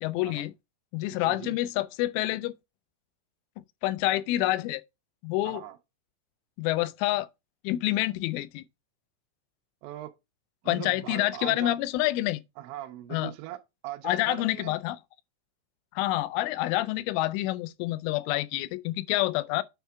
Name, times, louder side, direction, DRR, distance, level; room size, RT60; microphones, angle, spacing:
voice 1, 0.0-0.5 0.9-2.5 3.6-4.8 5.2-5.6 6.6-7.3 7.6-8.6 10.7-12.4 13.1-13.3 14.0-15.0 15.9-19.6, left 16 dB, 90° left, 3.1 m, -28 dB
voice 2, 1.1-1.6 5.4-5.8 9.8-10.1 10.6-11.7 12.6-14.8, right 14 dB, 80° right, 2.8 m, -40 dB
9.3 x 3.4 x 4.6 m
omnidirectional pair, 5.5 m